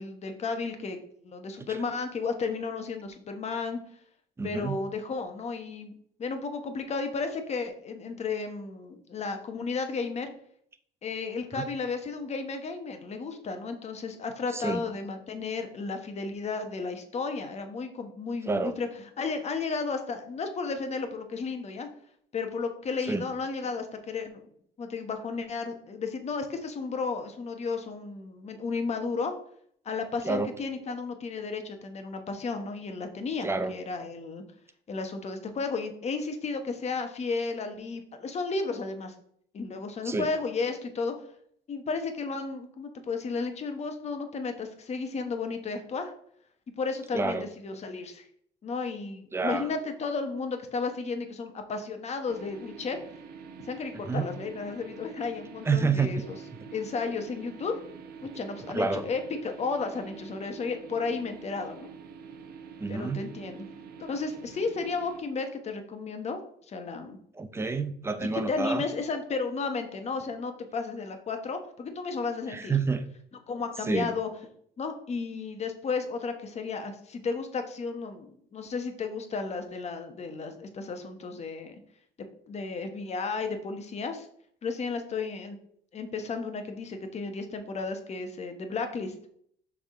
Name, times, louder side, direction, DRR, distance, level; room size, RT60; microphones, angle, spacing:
voice 1, 0.0-3.8 4.4-10.3 11.0-18.9 19.2-21.9 22.3-24.5 24.8-29.3 29.8-34.4 34.9-39.1 39.5-41.1 41.7-46.1 46.8-48.3 48.6-53.0 53.7-56.4 56.7-57.7 58.3-61.9 62.9-63.7 64.0-66.4 66.7-67.2 68.2-72.7 73.5-74.3 74.8-81.8 82.5-84.3 84.6-85.6 85.9-89.1, left 4 dB, 40° left, 6 dB, 1.1 m, -33 dB
voice 2, 4.4-4.8 11.5-11.6 14.5-14.8 18.5-18.7 23.1-23.2 30.2-30.5 33.4-33.7 40.0-40.3 47.1-47.5 49.3-49.7 54.0-54.3 55.6-56.1 58.7-59.0 62.8-63.2 67.4-68.8 72.5-73.1 73.9-74.1, right 4 dB, 15° right, 9 dB, 0.7 m, -28 dB
sound 1, 52.3-65.2, right 6 dB, 65° right, 0.9 m, -46 dB
6.1 x 3.6 x 4.9 m, 0.64 s
cardioid pair, 110°, 17 cm